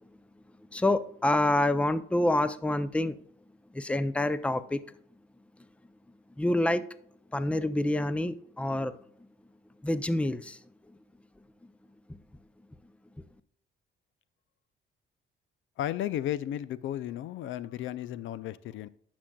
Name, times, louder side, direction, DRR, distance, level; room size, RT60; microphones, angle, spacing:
voice 1, 0.7-3.2 3.7-4.8 6.4-6.8 7.3-9.0 9.8-10.6 12.1-12.2, left 1 dB, 5° left, 0.4 m, -27 dB
voice 2, 15.8-18.9, left 12 dB, 75° left, 0.4 m, -34 dB
10.0 x 6.0 x 2.2 m
cardioid pair, 90°, 20 cm